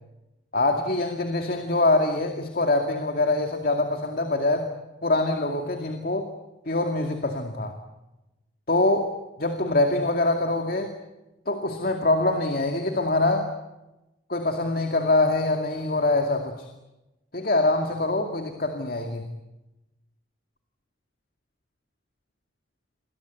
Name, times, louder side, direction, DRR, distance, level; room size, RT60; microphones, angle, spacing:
voice 1, 0.5-4.7 5.0-6.3 6.7-7.7 8.7-9.1 9.4-10.9 11.5-13.5 14.3-16.7 17.3-19.2, left 2 dB, 50° left, 5 dB, 2.3 m, -24 dB
29.0 x 23.0 x 8.3 m, 1.0 s
head